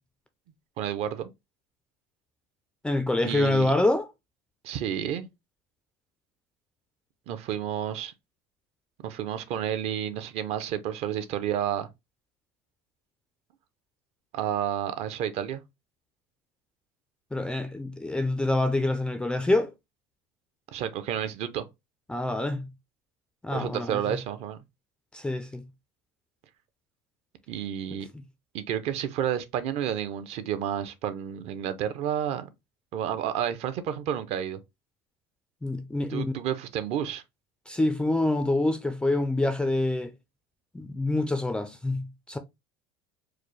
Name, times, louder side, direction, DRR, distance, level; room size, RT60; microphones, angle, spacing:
voice 1, 0.8-1.3 3.2-3.7 4.6-5.3 7.3-8.1 9.0-11.9 14.3-15.6 20.7-21.7 23.5-24.6 27.5-28.1 28.5-32.5 32.9-34.6 36.1-37.2, right 10 dB, 50° right, 0.6 m, -30 dB
voice 2, 2.8-4.1 17.3-19.7 22.1-22.7 23.4-24.1 25.1-25.6 28.1-28.2 35.6-36.3 37.7-40.1 40.7-42.4, left 2 dB, 5° left, 0.3 m, -26 dB
4.7 x 2.0 x 3.1 m
cardioid pair, 155°, 14 cm